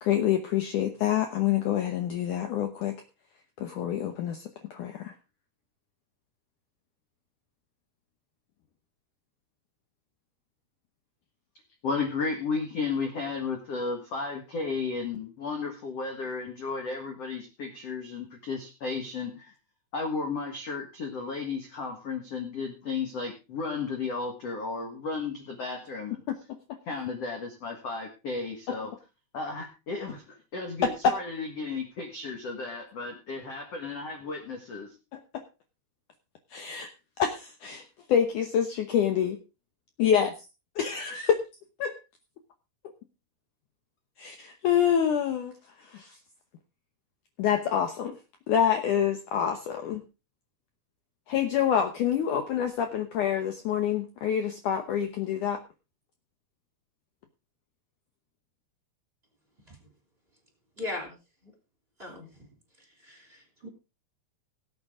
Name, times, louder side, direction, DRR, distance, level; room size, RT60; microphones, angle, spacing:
voice 1, 0.0-2.9 3.6-5.1 26.3-26.4 35.1-35.2 36.5-36.9 37.2-37.8 38.1-39.4 40.0-40.3 40.8-41.4 41.8-41.9 44.2-45.5 45.8-46.2 47.4-48.2 48.5-50.0 51.3-55.6, left 9 dB, 80° left, 6 dB, 1.8 m, -27 dB
voice 2, 11.8-19.5 19.9-26.2 26.9-28.9 29.3-34.9, left 4 dB, 55° left, 3 dB, 1.8 m, -34 dB
voice 3, 60.8-61.2 61.4-61.5 62.0-62.5 63.0-63.7, left 2 dB, 15° right, 2 dB, 2.9 m, -38 dB
18.0 x 8.6 x 3.7 m, 0.30 s
omnidirectional pair, 5.1 m